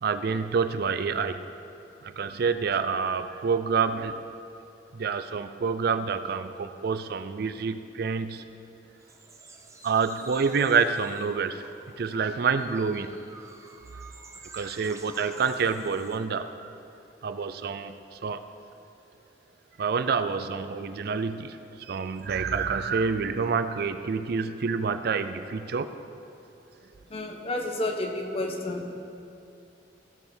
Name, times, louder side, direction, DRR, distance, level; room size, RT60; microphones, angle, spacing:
voice 1, 0.0-1.5 2.0-4.2 4.9-8.4 9.8-11.6 12.0-13.2 14.5-16.7 17.2-18.4 19.8-25.9, right 5 dB, 60° right, 10 dB, 0.4 m, -28 dB
sound 1, 9.0-16.2, right 3 dB, 15° right, 0.6 m, -50 dB
voice 2, 27.1-29.0, left 1 dB, 35° left, 2 dB, 1.0 m, -31 dB
16.5 x 5.8 x 4.4 m, 2.7 s
head